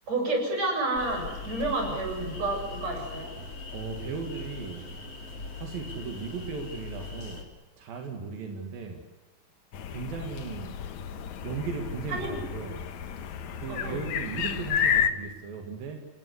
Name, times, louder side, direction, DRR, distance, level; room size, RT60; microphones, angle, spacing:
voice 1, 0.1-3.3 12.1-12.4 13.7-14.0, right 2 dB, 50° right, 2 dB, 8.9 m, -30 dB
sound 1, 1.0-7.4, left 3 dB, 45° left, 5.0 m, -40 dB
voice 2, 3.7-4.9 5.6-7.5 7.8-9.1 9.9-10.8 11.4-12.9 13.2-16.1, right 5 dB, 85° right, 3 dB, 4.1 m, -37 dB
sound 2, 9.7-15.1, left 8 dB, 65° left, 2.5 m, -31 dB
29.5 x 18.5 x 8.2 m, 1.1 s
omnidirectional pair, 4.0 m